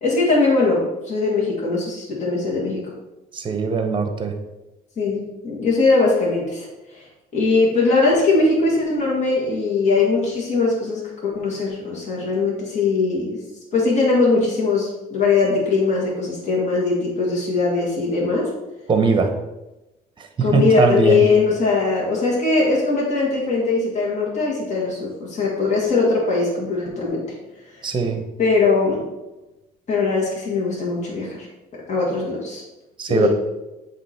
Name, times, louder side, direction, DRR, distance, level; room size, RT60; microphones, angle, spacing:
voice 1, 0.0-2.9 5.0-7.0 7.3-13.4 13.7-18.5 20.4-27.2 27.8-27.9 28.4-29.0 29.9-31.5 31.9-32.6 33.1-33.3, left 3 dB, 45° left, -4 dB, 1.9 m, -20 dB
voice 2, 3.3-4.3 18.9-19.3 20.5-21.3 27.8-28.2 33.0-33.3, right 4 dB, 30° right, 6 dB, 0.9 m, -20 dB
7.6 x 3.0 x 4.4 m, 1.0 s
cardioid pair, 110°, 17 cm